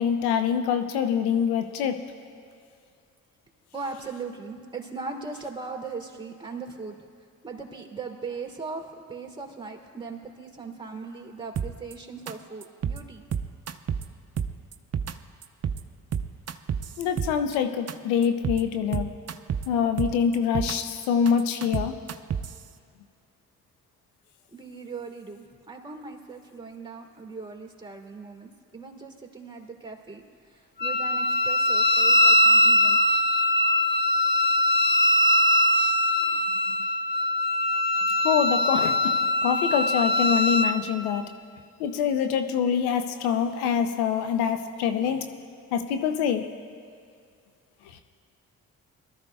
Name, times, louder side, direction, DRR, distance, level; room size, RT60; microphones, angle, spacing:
voice 1, 0.0-2.0 17.0-19.1 19.7-22.0 38.2-41.3 41.8-45.3 45.7-46.5, left 7 dB, 85° left, 7 dB, 0.7 m, -25 dB
voice 2, 3.7-7.0 7.4-13.2 24.5-33.0, right 4 dB, 15° right, 1 dB, 2.8 m, -39 dB
sound 1, 11.6-11.9 12.3-12.4 12.6-13.0 13.3-14.0 14.4-15.1 15.4-15.8 16.1-17.6 17.9-18.0 18.2-18.6 18.9-19.7 20.0-20.8 21.0-22.6, right 7 dB, 40° right, 0.7 m, -29 dB
Wind instrument woodwind instrument, 30.8-40.8, left 1 dB, 25° left, 0.8 m, -21 dB
22.5 x 13.5 x 2.3 m, 2.2 s
hypercardioid pair, 45°, 38 cm